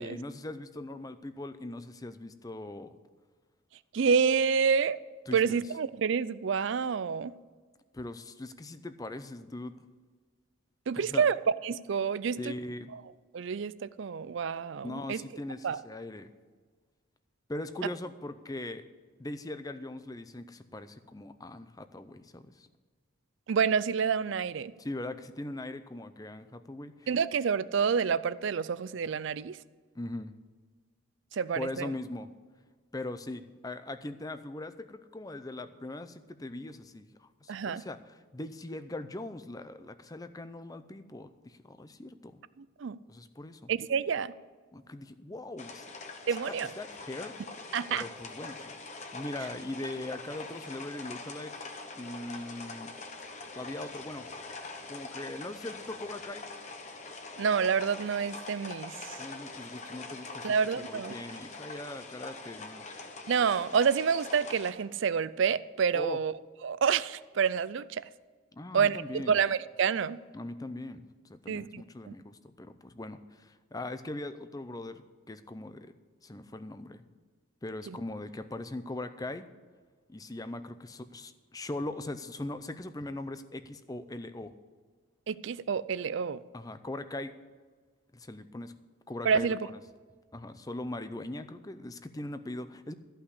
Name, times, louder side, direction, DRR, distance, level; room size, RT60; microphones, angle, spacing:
voice 1, 0.0-2.9 5.3-5.6 7.9-9.7 11.0-11.3 12.4-12.9 14.8-16.3 17.5-18.9 19.2-22.7 24.8-27.1 30.0-30.4 31.6-32.3 32.9-42.4 43.1-43.7 44.7-45.9 46.5-47.4 47.9-51.5 52.0-52.9 53.5-54.3 54.9-56.4 59.2-62.8 65.9-66.2 68.5-69.4 70.3-71.0 71.3-75.9 76.2-77.0 77.6-79.5 80.1-84.5 86.5-87.3 88.1-88.7 89.1-89.8 90.3-92.9, left 2 dB, 15° left, 11 dB, 0.5 m, -40 dB
voice 2, 3.9-5.0 5.3-7.3 10.9-11.4 11.6-12.6 12.9-13.0 13.3-15.2 15.6-15.8 23.5-24.7 27.1-29.6 31.3-31.9 37.5-37.8 42.6-43.0 43.7-44.3 46.3-46.7 47.7-48.0 57.4-59.2 60.4-61.2 63.3-66.3 66.6-68.0 68.7-70.2 71.5-72.1 77.9-78.0 85.3-86.4 89.2-89.6, right 6 dB, 60° right, 17 dB, 0.4 m, -28 dB
sound 1, 45.6-64.7, left 3 dB, 35° left, 1.0 m, -44 dB
14.0 x 5.7 x 8.2 m, 1.5 s
head